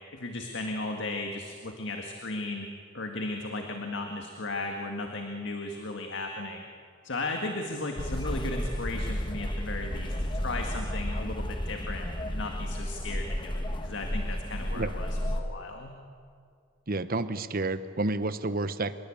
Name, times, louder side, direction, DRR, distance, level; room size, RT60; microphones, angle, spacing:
voice 1, 0.1-2.7 2.9-6.7 7.0-16.0, left 2 dB, 65° left, 3 dB, 1.9 m, -36 dB
sound 1, 8.0-15.4, equal, 25° left, 1.4 m, -32 dB
voice 2, 16.9-18.9, right 2 dB, 50° right, 13 dB, 1.0 m, -30 dB
25.5 x 21.5 x 8.7 m, 2.3 s
head